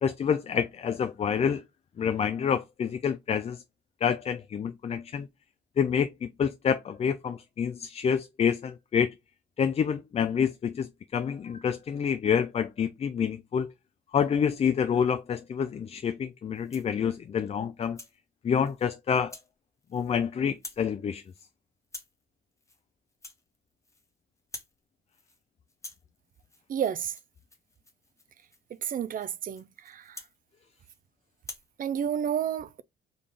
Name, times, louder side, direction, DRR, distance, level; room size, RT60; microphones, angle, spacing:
voice 1, 0.0-1.6 2.0-3.6 4.0-5.3 5.8-9.1 9.6-13.7 14.1-18.0 18.4-19.3 19.9-21.2, left 7 dB, 30° left, 0.3 m, -28 dB
Rattle (instrument), 16.5-17.0 17.5-18.2 18.6-18.9 19.3-19.5 19.8-20.2 20.5-20.9 21.2-21.5 21.8-22.2 22.6-22.8 23.1-24.1 24.4-24.8 25.1-25.4 25.7-31.0 31.4-31.7, left 2 dB, 15° left, 0.8 m, -48 dB
voice 2, 26.7-27.1 28.8-30.0 31.8-32.8, right 9 dB, 45° right, 0.4 m, -30 dB
3.8 x 2.4 x 3.3 m
cardioid pair, 90°, 20 cm